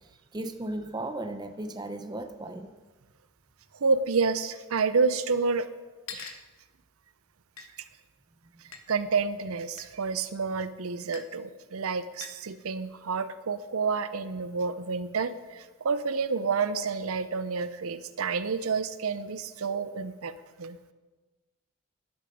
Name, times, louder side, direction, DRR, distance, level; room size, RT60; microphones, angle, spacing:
voice 1, 0.0-2.7, right 1 dB, 20° right, 8 dB, 0.6 m, -36 dB
voice 2, 3.7-5.7 6.1-6.4 8.9-20.3 20.6-20.8, right 4 dB, 70° right, 13 dB, 0.6 m, -29 dB
sound 1, 6.1-6.5 7.6-7.7 8.7-8.8 9.8-9.9 11.1-11.3 12.2-12.4, left 7 dB, 60° left, 1.1 m, -42 dB
12.0 x 11.0 x 5.3 m, 1.3 s
head